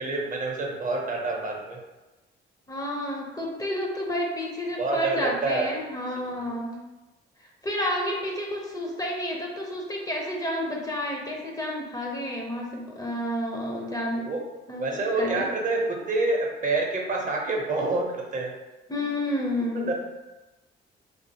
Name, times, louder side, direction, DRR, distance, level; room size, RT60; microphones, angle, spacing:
voice 1, 0.0-1.8 4.8-5.7 6.4-6.5 14.2-14.4 14.8-18.5 19.7-19.9, right 3 dB, 40° right, 0 dB, 0.6 m, -27 dB
voice 2, 2.7-6.8 7.6-14.3 14.7-15.5 18.9-19.9, left 1 dB, 20° left, -1 dB, 0.4 m, -30 dB
2.4 x 2.4 x 2.7 m, 1.1 s
cardioid pair, 90°, 20 cm